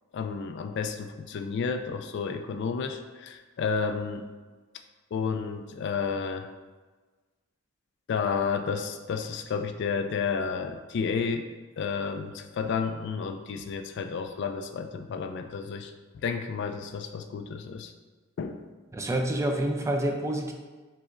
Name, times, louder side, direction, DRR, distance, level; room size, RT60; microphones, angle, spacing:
voice 1, 0.1-4.2 5.1-6.5 8.1-11.5 11.8-15.9 16.2-17.9 18.4-18.6, left 5 dB, 60° left, 7 dB, 0.3 m, -31 dB
voice 2, 18.9-20.5, right 1 dB, 15° right, 3 dB, 0.4 m, -27 dB
4.9 x 4.0 x 2.5 m, 1.3 s
head